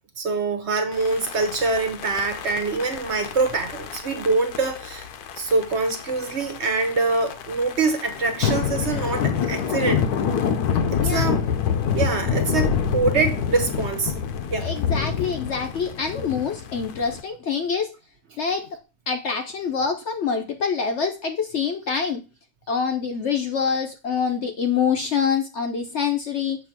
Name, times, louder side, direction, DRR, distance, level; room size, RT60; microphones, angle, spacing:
voice 1, 0.2-5.1 5.4-10.0 11.0-11.4 11.9-14.1 14.5-14.7, right 3 dB, 50° right, 1.1 m, -24 dB
sound 1, 0.9-17.2, left 7 dB, 80° left, 1.2 m, -27 dB
voice 2, 14.6-17.9 18.4-18.7 19.1-22.2 22.7-26.6, left 6 dB, 60° left, 0.8 m, -25 dB
7.1 x 2.8 x 5.8 m
omnidirectional pair, 1.6 m